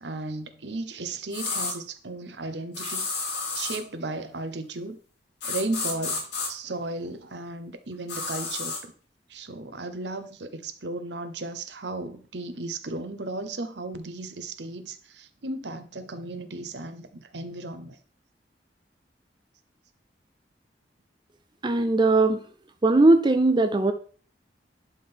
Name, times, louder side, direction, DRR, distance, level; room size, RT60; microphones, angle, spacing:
voice 1, 0.0-3.1 3.5-5.0 5.4-8.9 9.3-18.0, right 2 dB, 75° right, 0.9 m, -35 dB
sound 1, 1.3-1.7 2.7-3.8 5.4-6.5 8.1-8.8, left 4 dB, 80° left, 2.8 m, -31 dB
voice 2, 21.6-22.4 22.8-23.9, right 2 dB, 25° right, 0.5 m, -19 dB
11.0 x 3.8 x 4.4 m
head